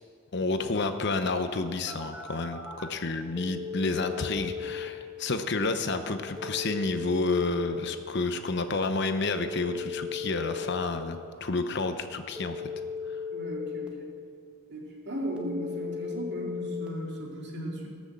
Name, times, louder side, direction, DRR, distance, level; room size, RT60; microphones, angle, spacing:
voice 1, 0.3-12.6, left 3 dB, 55° left, 8 dB, 0.8 m, -30 dB
Telephone, 1.9-2.9 3.4-4.9 6.4-7.9 9.4-10.9 12.4-13.9 15.4-16.9, left 5 dB, 5° right, 1.3 m, -36 dB
voice 2, 13.3-14.1 14.7-17.9, equal, 55° right, -2 dB, 2.5 m, -36 dB
18.0 x 6.3 x 7.5 m, 2.3 s
head